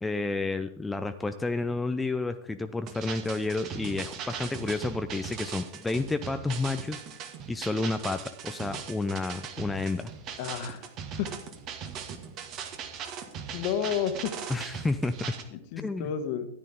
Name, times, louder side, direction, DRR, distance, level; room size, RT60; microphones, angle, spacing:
voice 1, 0.0-7.0 7.5-10.1 14.5-15.1 15.8-16.1, left 3 dB, 10° left, 8 dB, 0.5 m, -30 dB
sound 1, 2.9-15.4, right 7 dB, 35° right, 1.7 m, -39 dB
voice 2, 10.4-10.9 11.2-11.3 13.5-14.3 15.5-16.5, left 9 dB, 45° left, 9 dB, 1.5 m, -31 dB
14.5 x 10.5 x 3.7 m, 0.76 s
figure-of-eight pair, 90°, 0 cm